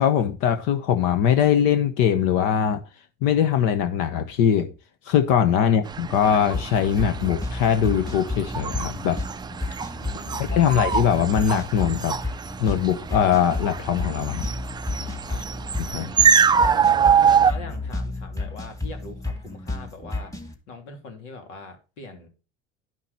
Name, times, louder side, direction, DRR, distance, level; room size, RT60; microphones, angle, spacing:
voice 1, 0.0-2.8 3.2-4.7 5.1-9.2 10.5-12.2 12.6-14.5 15.9-16.1, left 8 dB, 65° left, 1.0 m, -21 dB
sound 1, 5.9-17.5, right 7 dB, 15° right, 0.4 m, -24 dB
sound 2, 6.5-20.5, left 2 dB, 10° left, 1.9 m, -32 dB
voice 2, 10.0-10.8 15.3-15.4 16.6-20.3 20.7-22.3, left 3 dB, 85° left, 2.9 m, -41 dB
11.0 x 5.8 x 4.1 m
supercardioid pair, 100°, 34 cm